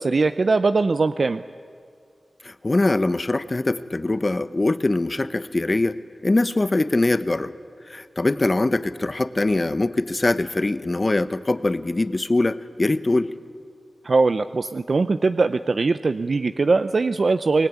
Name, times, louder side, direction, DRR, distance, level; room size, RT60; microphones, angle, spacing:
voice 1, 0.0-1.4 14.0-17.7, right 3 dB, 60° right, 10 dB, 0.6 m, -21 dB
voice 2, 2.4-6.0 6.2-7.5 7.9-13.3, left 2 dB, 40° left, 12 dB, 1.1 m, -22 dB
25.0 x 20.0 x 9.5 m, 2.2 s
cardioid pair, 50°, 0 cm